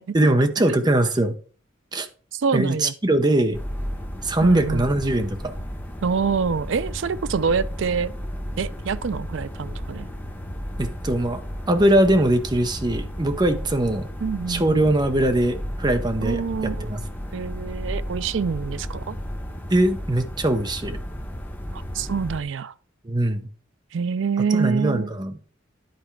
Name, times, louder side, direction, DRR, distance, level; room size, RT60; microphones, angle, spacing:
voice 1, 0.1-1.4 1.9-2.1 2.5-3.6 4.2-5.5 10.8-14.1 14.5-17.0 19.7-21.0 23.0-23.5 24.5-25.3, right 1 dB, 20° right, 0.7 m, -21 dB
voice 2, 2.3-2.9 4.4-4.9 6.0-8.1 8.6-10.1 14.2-14.9 16.2-17.0 17.3-19.2 21.7-22.7 23.9-25.1, right 5 dB, 65° right, 0.4 m, -26 dB
sound 1, 3.5-22.4, equal, 10° left, 0.9 m, -33 dB
10.5 x 4.3 x 4.6 m
head